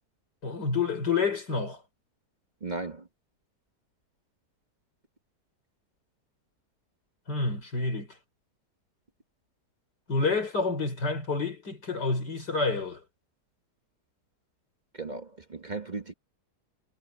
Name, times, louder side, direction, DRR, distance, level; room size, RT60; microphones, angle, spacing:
voice 1, 0.4-1.8 7.3-8.1 10.1-13.0, left 4 dB, 90° left, 6.3 m, -28 dB
voice 2, 2.6-3.0 15.0-16.1, right 3 dB, 30° right, 1.2 m, -36 dB
omnidirectional pair, 1.7 m